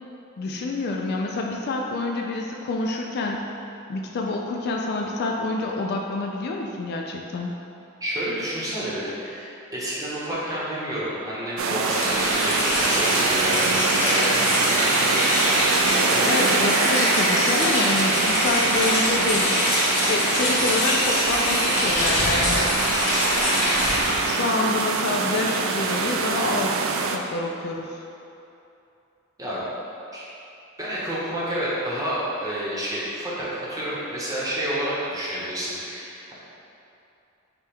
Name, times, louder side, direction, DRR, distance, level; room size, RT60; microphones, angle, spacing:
voice 1, 0.4-3.5 3.9-7.5 16.3-19.6 20.1-22.7 24.1-28.0, left 2 dB, 50° left, 1 dB, 0.3 m, -27 dB
voice 2, 8.0-15.5 15.9-16.5 29.4-29.6 30.1-30.3 30.8-36.3, right 1 dB, 15° right, -8 dB, 0.9 m, -30 dB
sound 1, 11.6-27.2, right 4 dB, 70° right, 0.3 m, -25 dB
Rain, 11.7-24.3, equal, 10° left, 1.2 m, -23 dB
5.1 x 2.3 x 4.4 m, 2.8 s
head